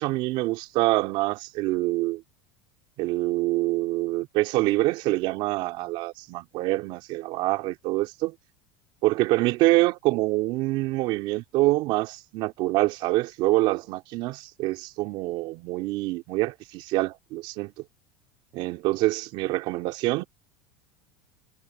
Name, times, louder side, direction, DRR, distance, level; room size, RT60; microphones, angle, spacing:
voice 1, 0.0-2.2 3.0-8.3 9.0-17.7 18.5-20.2, right 19 dB, 60° right, 2.7 m, -25 dB
supercardioid pair, 115°, 10 cm